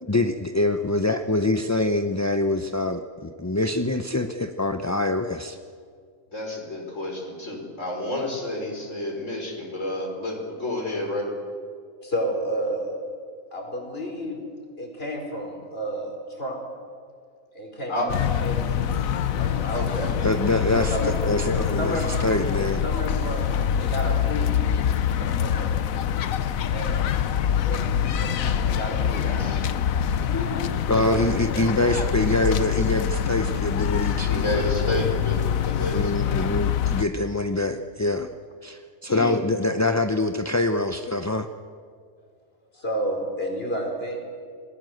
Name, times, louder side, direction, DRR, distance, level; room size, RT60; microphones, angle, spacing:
voice 1, 0.0-5.6 20.2-21.0 21.3-22.8 30.2-34.5 35.9-38.3 38.6-41.5, left 2 dB, 20° left, 7 dB, 0.5 m, -25 dB
voice 2, 6.3-11.3 17.9-18.1 19.7-20.1 20.8-21.1 29.2-29.6 30.3-31.9 34.3-36.5 39.1-39.4, left 1 dB, 65° left, 0 dB, 5.2 m, -30 dB
voice 3, 12.0-13.0 13.5-14.4 14.8-16.6 17.5-17.9 18.4-18.6 19.3-20.1 20.9-22.1 22.5-24.7 25.2-25.8 26.7-27.2 27.7-29.3 42.7-44.4, equal, 45° left, 1 dB, 5.1 m, -31 dB
sound 1, 18.1-37.1, left 9 dB, 85° left, 1.3 m, -25 dB
27.0 x 20.0 x 7.9 m, 2.1 s
omnidirectional pair, 1.4 m